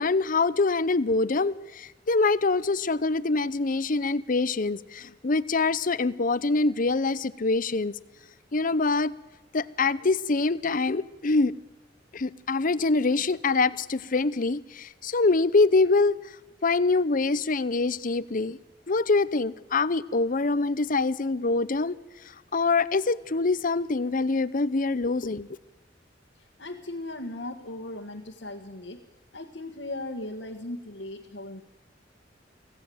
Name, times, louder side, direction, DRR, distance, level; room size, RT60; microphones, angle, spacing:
voice 1, 0.0-7.9 8.5-9.1 9.5-11.5 12.1-16.2 16.6-18.6 18.9-22.0 22.5-25.5, left 3 dB, 45° left, 18 dB, 0.7 m, -24 dB
voice 2, 26.4-29.0 29.3-31.6, left 1 dB, 75° left, 2 dB, 1.6 m, -37 dB
24.5 x 17.0 x 7.9 m, 1.1 s
head